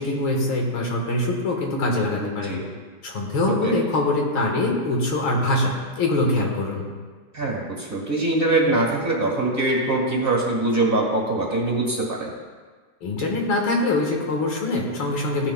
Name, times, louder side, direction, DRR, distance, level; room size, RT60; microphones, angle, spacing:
voice 1, 0.0-2.6 3.0-6.9 13.0-15.5, left 2 dB, 85° left, 0 dB, 2.4 m, -23 dB
voice 2, 2.2-2.6 3.5-3.8 7.3-12.3, right 2 dB, 30° right, -2 dB, 1.7 m, -23 dB
15.5 x 10.0 x 2.3 m, 1.5 s
omnidirectional pair, 2.2 m